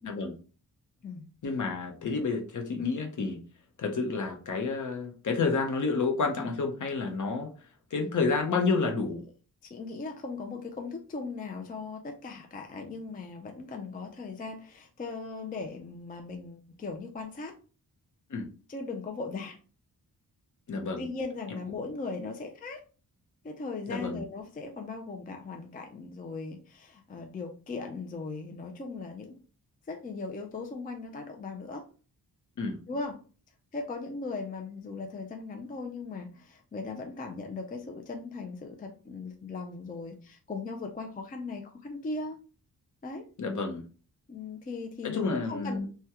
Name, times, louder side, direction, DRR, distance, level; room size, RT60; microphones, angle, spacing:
voice 1, 0.0-0.3 1.4-3.4 3.8-7.5 7.9-9.2 18.3-18.5 20.7-21.0 23.9-24.2 32.6-32.8 43.4-43.8 45.0-45.9, left 4 dB, 55° left, 4 dB, 0.7 m, -29 dB
voice 2, 9.6-17.5 18.7-19.6 21.0-22.8 23.4-29.4 29.9-31.9 32.9-33.2 33.7-42.4 43.0-43.3 44.3-45.9, left 3 dB, 25° left, 3 dB, 0.3 m, -38 dB
3.4 x 2.2 x 2.8 m, 0.37 s
wide cardioid pair, 155°, 37 cm